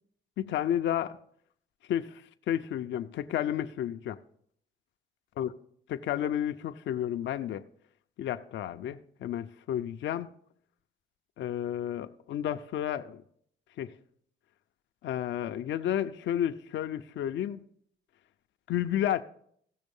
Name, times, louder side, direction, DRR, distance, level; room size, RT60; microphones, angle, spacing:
voice 1, 0.4-1.2 1.9-2.2 2.5-4.2 5.4-5.5 5.9-7.6 8.2-10.3 11.4-13.2 13.8-13.9 15.0-17.6 18.7-19.2, left 10 dB, 70° left, 0.5 m, -31 dB
16.0 x 6.2 x 5.4 m
cardioid pair, 90°, 20 cm